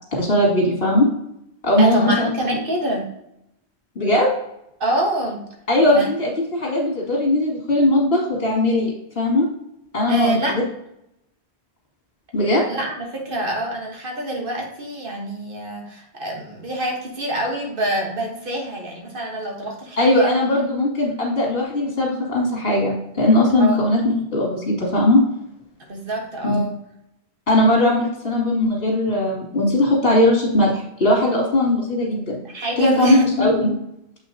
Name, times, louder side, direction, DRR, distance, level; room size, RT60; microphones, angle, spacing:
voice 1, 0.2-1.1 1.6-2.3 4.0-4.3 5.7-9.5 9.9-10.6 12.3-12.6 20.0-25.2 26.4-26.6 27.5-32.4 32.8-33.8, left 1 dB, 60° left, -3 dB, 2.6 m, -19 dB
voice 2, 1.8-3.1 4.8-5.4 5.9-6.1 10.1-10.6 12.7-20.3 23.6-23.8 25.8-26.8 32.4-33.2, right 1 dB, 55° right, 1 dB, 1.5 m, -26 dB
7.6 x 5.6 x 2.8 m, 0.82 s
omnidirectional pair, 1.1 m